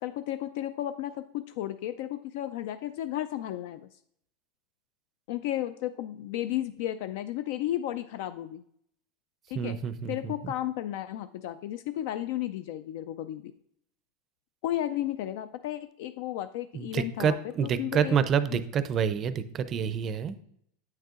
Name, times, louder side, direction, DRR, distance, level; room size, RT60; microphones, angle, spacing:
voice 1, 0.0-4.0 5.3-8.6 9.5-9.8 10.1-13.5 14.6-18.2, left 13 dB, 65° left, 11 dB, 0.3 m, -33 dB
voice 2, 9.6-10.5 16.7-20.4, right 7 dB, 30° right, 13 dB, 0.4 m, -28 dB
8.5 x 6.5 x 2.4 m, 0.69 s
supercardioid pair, 150°, 0 cm